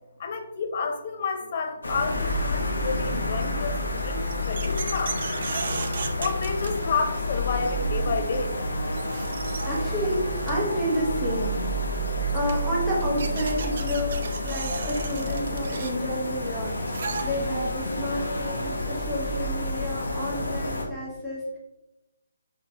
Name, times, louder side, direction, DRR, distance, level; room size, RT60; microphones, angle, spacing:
voice 1, 0.2-5.2 6.2-8.6, left 5 dB, 45° left, 6 dB, 0.4 m, -30 dB
sound 1, 1.8-20.8, equal, 90° left, 0.7 m, -29 dB
sound 2, 4.1-7.2 8.5-8.6 8.9-10.7 11.9-12.0 12.3-17.8, right 4 dB, 55° right, 0.3 m, -37 dB
voice 2, 9.6-12.1 12.3-14.1 14.4-21.6, left 1 dB, ahead, -9 dB, 0.8 m, -30 dB
3.8 x 2.7 x 2.2 m, 0.98 s
hypercardioid pair, 155°, 0 cm